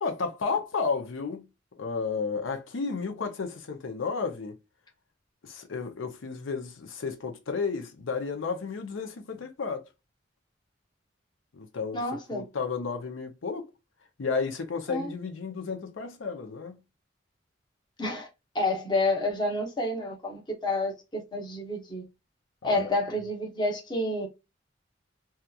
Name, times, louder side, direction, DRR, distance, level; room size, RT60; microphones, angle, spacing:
voice 1, 0.0-1.5 1.8-4.6 5.4-9.9 11.5-13.7 14.2-16.8 22.6-22.9, left 5 dB, 85° left, 0.6 m, -32 dB
voice 2, 11.9-12.4 14.9-15.1 18.0-18.3 18.5-22.0 22.6-24.3, left 2 dB, 25° left, 0.8 m, -29 dB
2.8 x 2.3 x 2.2 m
head